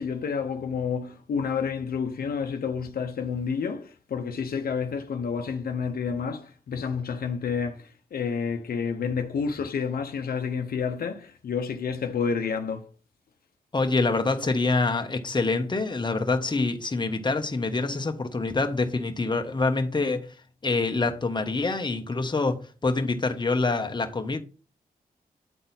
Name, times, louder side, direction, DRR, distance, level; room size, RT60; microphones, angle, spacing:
voice 1, 0.0-12.9, left 6 dB, 80° left, 0.8 m, -29 dB
voice 2, 13.7-20.3 20.6-24.4, left 3 dB, 30° left, 1.1 m, -26 dB
9.1 x 4.0 x 4.1 m
cardioid pair, 55°, 15 cm